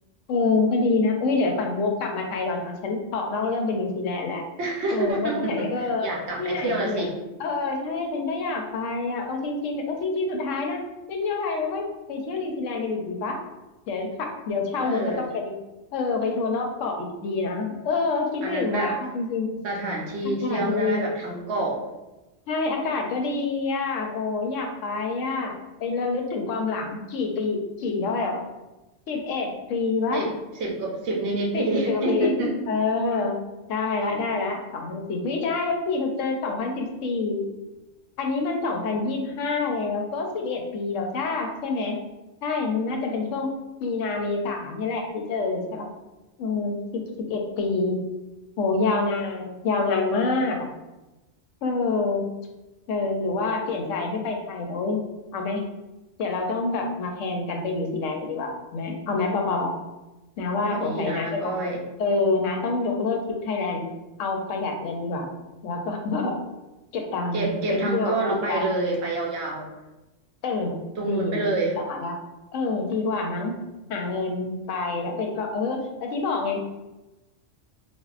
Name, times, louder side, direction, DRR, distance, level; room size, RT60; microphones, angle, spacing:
voice 1, 0.3-4.4 4.9-6.1 6.4-7.0 7.4-10.8 11.1-13.4 13.9-15.5 15.9-19.5 20.4-21.1 22.5-28.4 29.1-30.2 31.5-32.3 32.7-33.4 33.7-37.5 38.2-42.0 42.4-43.5 43.8-45.9 46.4-48.0 48.6-50.7 51.6-52.2 52.9-55.0 55.3-55.6 56.2-59.7 60.4-61.6 62.0-63.8 64.2-65.3 65.6-66.4 66.9-68.7 70.4-70.8 71.0-71.4 71.7-72.2 72.5-73.5 73.9-76.6, left 3 dB, 85° left, 3 dB, 0.9 m, -27 dB
voice 2, 4.6-7.1 14.8-15.2 18.4-19.0 19.6-21.8 30.1-30.3 30.6-32.6 60.7-61.8 67.3-69.7 71.0-71.8, right 2 dB, 65° right, -1 dB, 0.9 m, -27 dB
4.2 x 2.2 x 2.4 m, 1.0 s
omnidirectional pair, 1.3 m